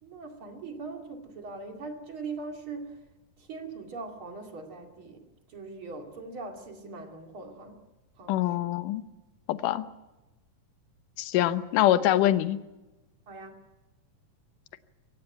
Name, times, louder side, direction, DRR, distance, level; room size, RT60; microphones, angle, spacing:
voice 1, 0.0-3.0 3.4-7.8 8.2-8.7 13.3-13.6, right 3 dB, 40° right, 3 dB, 2.9 m, -41 dB
voice 2, 8.3-9.0 9.5-9.9 11.2-12.6, left 13 dB, 70° left, 12 dB, 2.2 m, -24 dB
24.0 x 16.0 x 9.0 m, 1.1 s
omnidirectional pair, 4.2 m